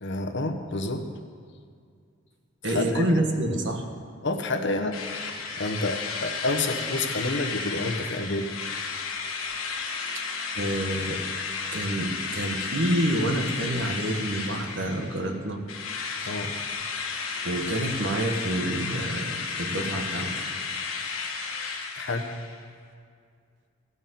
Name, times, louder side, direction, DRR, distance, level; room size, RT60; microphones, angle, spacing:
voice 1, 0.0-1.1 2.6-3.1 4.2-5.1 5.6-8.5 16.2-16.6 21.9-22.3, left 2 dB, 55° left, 4 dB, 1.1 m, -29 dB
voice 2, 2.6-3.8 10.1-10.3 10.5-11.2 11.7-15.6 17.4-20.4, right 1 dB, 60° right, 4 dB, 1.4 m, -28 dB
Drill, 4.9-15.3 15.7-22.6, left 5 dB, 75° left, 1.6 m, -33 dB
15.0 x 6.3 x 9.1 m, 2.2 s
head